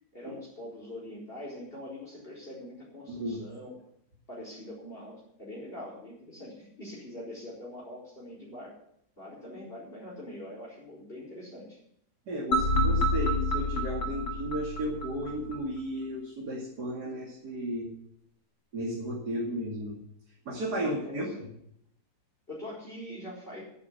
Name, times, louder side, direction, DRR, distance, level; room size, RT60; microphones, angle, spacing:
voice 1, 0.1-3.7 4.3-8.8 9.2-11.8 20.7-21.4 22.5-23.6, left 1 dB, 35° left, -5 dB, 4.8 m, -43 dB
voice 2, 3.1-3.4 12.3-17.9 18.7-20.0 20.5-21.5, equal, 90° right, -3 dB, 3.1 m, -34 dB
sound 1, 12.5-15.6, left 1 dB, 75° left, 2.4 m, -28 dB
10.5 x 9.5 x 8.4 m, 0.72 s
omnidirectional pair, 1.7 m